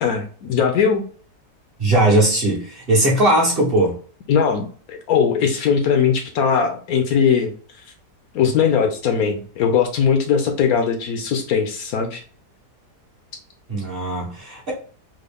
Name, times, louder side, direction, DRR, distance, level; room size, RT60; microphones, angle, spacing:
voice 1, 0.0-1.0 4.3-7.5 8.3-12.2, left 6 dB, 70° left, 5 dB, 1.0 m, -19 dB
voice 2, 1.8-4.0 13.7-14.7, right 1 dB, 40° right, -3 dB, 1.0 m, -18 dB
3.7 x 2.1 x 3.4 m, 0.43 s
omnidirectional pair, 1.7 m